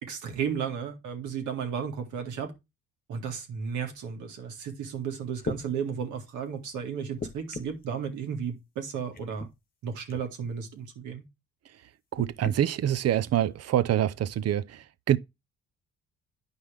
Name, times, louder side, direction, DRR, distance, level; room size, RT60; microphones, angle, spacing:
voice 1, 0.0-2.5 3.1-9.5 9.8-11.2, right 7 dB, 85° right, 1.9 m, -34 dB
sound 1, 4.9-5.0 5.4-5.6 7.2-7.8 9.1-9.5 10.1-10.3 12.1-12.6 13.5-13.6, left 3 dB, 30° left, 1.1 m, -37 dB
voice 2, 12.1-15.2, right 11 dB, 55° right, 0.6 m, -26 dB
9.6 x 5.4 x 3.5 m
cardioid pair, 90°, 30 cm